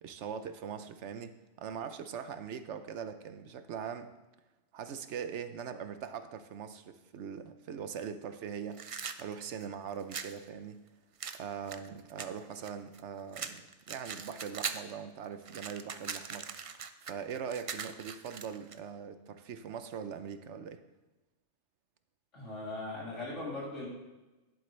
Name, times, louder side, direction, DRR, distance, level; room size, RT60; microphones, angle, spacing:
voice 1, 0.0-4.1 4.7-8.8 9.2-10.8 11.3-16.5 17.1-20.8, right 7 dB, 75° right, 9 dB, 1.1 m, -41 dB
sound 1, 8.7-10.4 11.2-13.0 13.3-14.9 15.2-18.8, right 6 dB, 50° right, 0.4 m, -41 dB
voice 2, 22.3-23.9, left 2 dB, 85° left, -6 dB, 3.5 m, -39 dB
12.0 x 11.0 x 3.3 m, 1.1 s
omnidirectional pair, 1.2 m